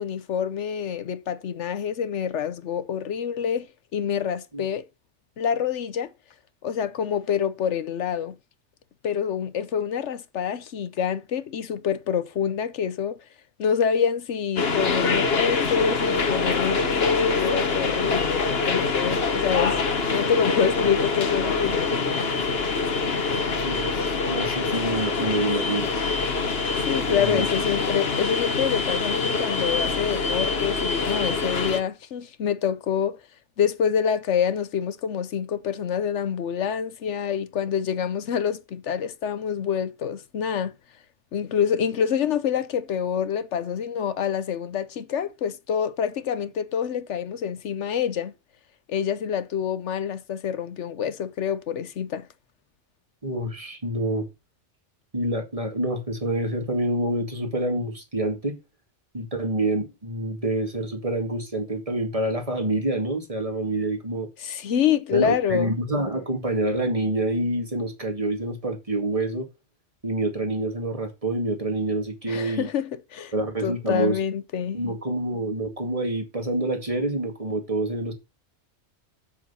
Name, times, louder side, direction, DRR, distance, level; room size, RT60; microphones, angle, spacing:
voice 1, 0.0-4.8 5.4-6.1 6.6-8.4 9.0-13.2 13.6-21.9 26.9-33.2 33.6-40.7 41.3-48.3 48.9-52.3 64.4-65.7 72.3-73.3 73.6-74.8, left 8 dB, 75° left, 1.1 m, -26 dB
sound 1, 14.6-31.8, left 4 dB, 55° left, 1.5 m, -25 dB
voice 2, 23.6-25.9 27.1-27.5 53.2-54.3 55.1-58.6 59.1-64.3 65.1-69.5 70.0-72.7 73.3-74.2 74.7-78.1, right 1 dB, 30° right, 2.3 m, -27 dB
7.8 x 7.3 x 5.6 m
omnidirectional pair, 1.2 m